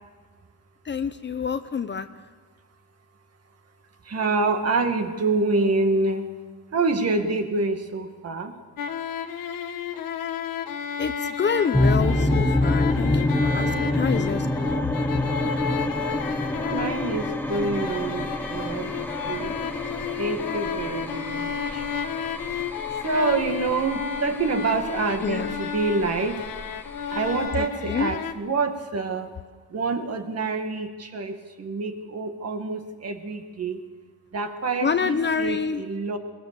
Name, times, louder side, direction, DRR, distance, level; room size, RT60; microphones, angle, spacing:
voice 1, 0.8-2.1 11.0-14.9 25.2-25.6 27.6-28.1 34.8-35.8, left 6 dB, 30° left, 10 dB, 0.7 m, -27 dB
voice 2, 4.1-6.3 6.7-8.5 16.6-18.9 19.3-19.5 20.2-21.8 23.0-26.4 27.1-29.3 29.7-33.8 34.3-36.2, right 3 dB, 45° right, 5 dB, 2.1 m, -26 dB
sound 1, 8.8-28.3, left 7 dB, 65° left, 1.3 m, -32 dB
sound 2, 11.7-27.5, left 1 dB, 5° left, 1.1 m, -27 dB
22.0 x 19.5 x 6.9 m, 1.5 s
cardioid pair, 145°, 36 cm